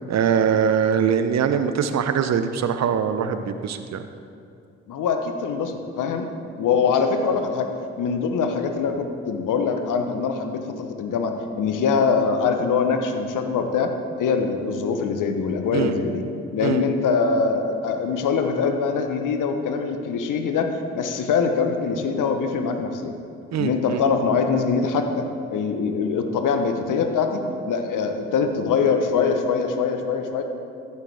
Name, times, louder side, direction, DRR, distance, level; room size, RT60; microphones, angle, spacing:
voice 1, 0.1-4.0 15.7-15.9 16.6-16.8 23.5-24.0, right 7 dB, 50° right, 9 dB, 0.7 m, -22 dB
voice 2, 4.9-6.3 6.6-7.7 8.0-13.9 14.2-16.2 16.5-23.1 23.6-30.4, left 5 dB, 60° left, 6 dB, 1.0 m, -23 dB
14.0 x 6.9 x 3.5 m, 2.5 s
hypercardioid pair, 45°, 36 cm